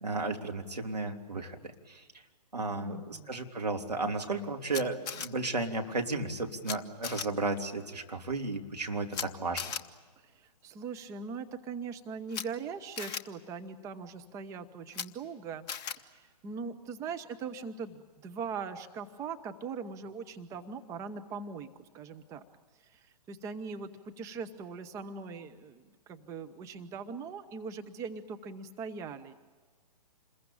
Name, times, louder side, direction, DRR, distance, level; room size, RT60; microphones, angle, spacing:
voice 1, 0.0-2.0 2.5-9.6, right 3 dB, 75° right, 2 dB, 3.3 m, -34 dB
voice 2, 2.8-3.3 10.2-15.7 16.0-21.7 21.9-22.4 22.8-23.9 24.2-29.3, right 5 dB, 15° right, 8 dB, 0.9 m, -41 dB
Camera, 4.7-5.3 6.6-6.7 7.0-7.2 9.1-9.3 9.6-9.8 12.3-12.4 13.0-13.2 14.9-15.1 15.7-16.0, left 7 dB, 20° left, 1.0 m, -36 dB
28.0 x 21.5 x 8.8 m, 1.4 s
figure-of-eight pair, 125°, 21 cm